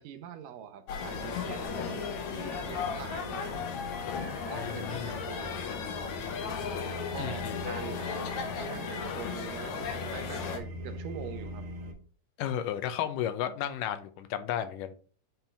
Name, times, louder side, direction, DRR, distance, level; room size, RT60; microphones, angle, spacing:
voice 1, 0.0-3.6 4.5-5.6 7.1-8.3 8.5-11.7, right 9 dB, 85° right, 2.5 m, -44 dB
sound 1, 0.9-10.6, left 7 dB, 70° left, 2.2 m, -36 dB
sound 2, 1.0-11.9, equal, 50° right, 2.0 m, -42 dB
voice 2, 4.5-5.2 7.2-7.6 12.4-14.9, left 10 dB, 85° left, 2.3 m, -33 dB
9.4 x 4.5 x 3.4 m
omnidirectional pair, 3.7 m